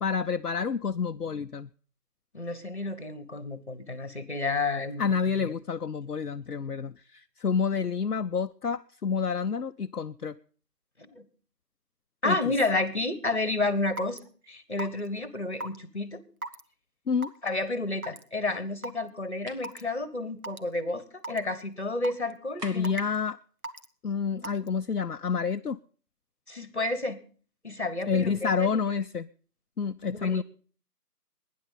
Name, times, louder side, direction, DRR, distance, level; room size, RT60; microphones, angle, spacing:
voice 1, 0.0-1.7 5.0-10.3 12.2-12.4 17.1-17.3 22.6-23.4 24.0-25.8 28.1-29.3 29.8-30.4, left 6 dB, 70° left, 8 dB, 0.6 m, -28 dB
voice 2, 2.3-5.0 5.4-5.5 11.0-11.3 12.2-14.2 14.5-16.2 17.4-22.9 26.5-27.2 27.6-28.7 30.1-30.4, left 2 dB, 45° left, 15 dB, 1.4 m, -31 dB
Raindrop / Water tap faucet / Drip, 14.0-14.2 14.8-15.1 15.6-15.8 16.4-16.6 17.2-17.5 18.0-18.2 18.8-18.9 19.6-19.8 20.4-20.6 21.2-21.4 22.0-22.3 22.8-23.2 23.6-23.9 24.4-24.7, right 1 dB, 60° right, 1.3 m, -36 dB
sound 1, 19.5-19.7 22.6-23.1, right 1 dB, 80° right, 2.7 m, -43 dB
19.0 x 10.5 x 5.4 m, 0.43 s
figure-of-eight pair, 175°, 48 cm